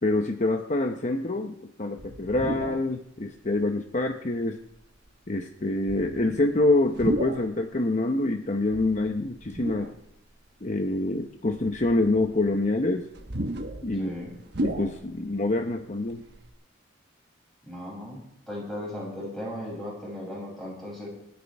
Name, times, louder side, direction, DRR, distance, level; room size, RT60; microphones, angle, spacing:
voice 1, 0.0-4.6 5.3-9.9 10.6-13.1 13.8-14.1 14.6-16.2, left 2 dB, 40° left, 5 dB, 0.8 m, -26 dB
sound 1, 2.0-2.9 3.6-3.7 4.7-5.1 5.8-7.6 8.7-10.2 10.8-10.9 11.5-15.4 15.7-15.8 16.0-16.5, right 1 dB, 60° right, 1.3 m, -34 dB
voice 2, 13.9-14.3 17.6-18.2 18.5-21.1, left 1 dB, ahead, -5 dB, 7.1 m, -36 dB
28.0 x 9.6 x 3.5 m, 0.82 s
head